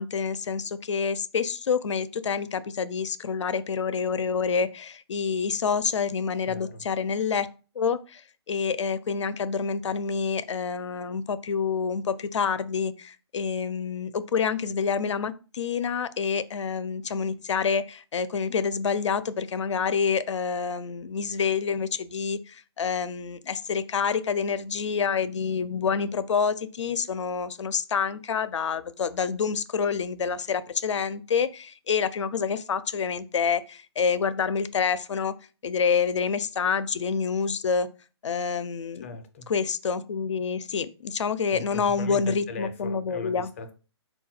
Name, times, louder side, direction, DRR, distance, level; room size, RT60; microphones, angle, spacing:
voice 1, 0.0-7.5 7.8-8.2 8.5-35.3 35.6-37.9 38.2-39.1 39.5-43.5, left 6 dB, 85° left, 0.4 m, -27 dB
voice 2, 6.5-6.8 39.0-39.5 41.5-43.7, left 3 dB, 30° left, 0.4 m, -39 dB
3.8 x 2.2 x 4.2 m
hypercardioid pair, 165°, 15 cm